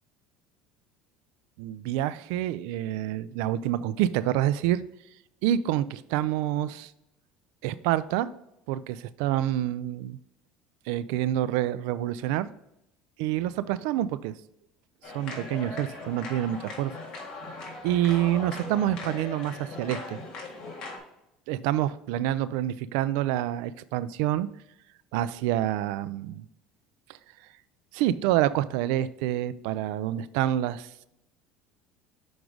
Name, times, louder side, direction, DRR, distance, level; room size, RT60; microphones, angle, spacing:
voice 1, 1.6-4.8 5.4-6.9 7.6-8.3 8.7-10.2 10.9-12.5 13.2-14.4 15.1-16.9 17.8-20.2 21.5-24.5 25.1-26.5 27.9-30.9, right 12 dB, 80° right, 16 dB, 0.3 m, -27 dB
sound 1, 15.0-21.0, left 3 dB, 40° left, 1.7 m, -39 dB
6.2 x 4.6 x 3.8 m, 0.83 s
cardioid pair, 155°, 2 cm